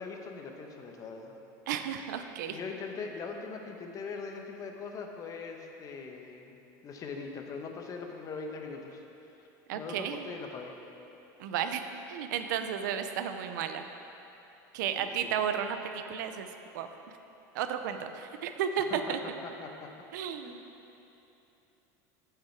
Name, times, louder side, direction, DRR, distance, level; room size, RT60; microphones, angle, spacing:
voice 1, 0.0-1.3 2.5-6.6 6.8-9.0 9.7-10.8 14.9-15.3 18.9-19.1 19.4-19.9 20.4-20.6, left 4 dB, 35° left, 3 dB, 1.0 m, -41 dB
voice 2, 1.7-2.6 9.7-10.3 11.4-11.8 12.1-13.9 14.7-16.5 16.7-16.9 17.5-19.2 20.1-20.6, right 8 dB, 80° right, 8 dB, 0.5 m, -33 dB
9.7 x 5.8 x 4.6 m, 3.0 s
supercardioid pair, 110°, 10 cm